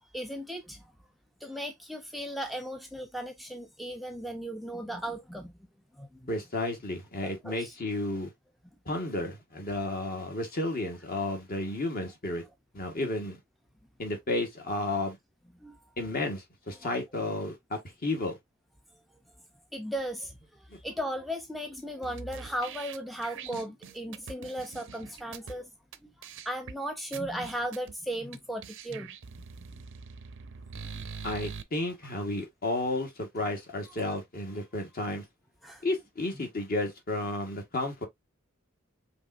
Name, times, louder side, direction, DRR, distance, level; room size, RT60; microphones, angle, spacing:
voice 1, 0.1-0.8 1.4-5.5 6.0-6.3 7.2-7.7 15.6-15.8 16.8-16.9 19.7-20.3 20.8-25.7 26.0-29.2 29.6-29.7 30.8-31.0 35.6-35.8, equal, ahead, 0.5 m, -36 dB
voice 2, 6.3-8.3 8.8-12.4 12.7-13.4 14.0-15.2 16.0-18.4 20.7-20.8 31.2-35.2 35.8-38.1, left 2 dB, 45° left, 1.5 m, -32 dB
sound 1, 22.0-25.5 25.9-26.0 26.2-26.7 27.1-27.9 28.3-28.4 28.6-31.6, right 5 dB, 60° right, 0.6 m, -43 dB
5.2 x 3.1 x 2.6 m
head